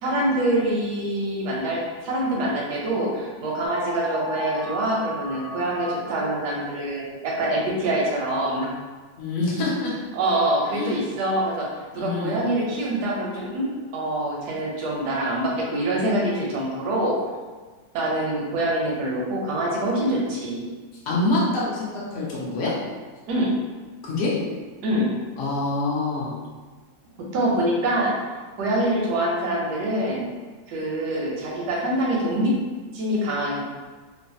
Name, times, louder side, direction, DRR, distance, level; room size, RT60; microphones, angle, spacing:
voice 1, 0.0-8.7 10.1-17.1 17.9-20.7 23.3-23.5 24.8-25.1 27.2-28.2 28.6-30.3 30.7-32.6 32.9-33.6, right 1 dB, 70° right, -3 dB, 1.0 m, -25 dB
processed-howling, 3.6-7.4, left 1 dB, 50° left, 1.2 m, -36 dB
voice 2, 9.2-9.9 10.7-10.9 11.9-12.3 21.1-22.7 24.0-24.3 25.4-26.3, left 2 dB, 70° left, -6 dB, 0.6 m, -25 dB
3.2 x 2.1 x 2.6 m, 1.4 s
omnidirectional pair, 2.1 m